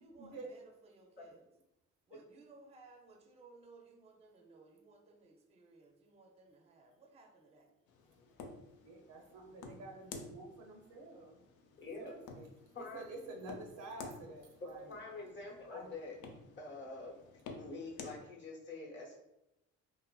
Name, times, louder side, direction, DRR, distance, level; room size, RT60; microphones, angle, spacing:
voice 1, 0.0-1.5 2.1-7.7, right 3 dB, 20° right, 2 dB, 0.4 m, -60 dB
sound 1, 7.9-18.2, left 4 dB, 80° left, 0.5 m, -52 dB
voice 2, 8.8-11.4 12.0-12.5 12.8-15.0 15.7-15.9, right 2 dB, 75° right, 2 dB, 0.5 m, -49 dB
voice 3, 11.8-12.1 12.7-13.0 14.6-16.2 16.6-17.2 17.6-19.2, left 3 dB, 40° left, -3 dB, 0.8 m, -46 dB
2.9 x 2.4 x 2.2 m, 0.88 s
cardioid pair, 90°, 30 cm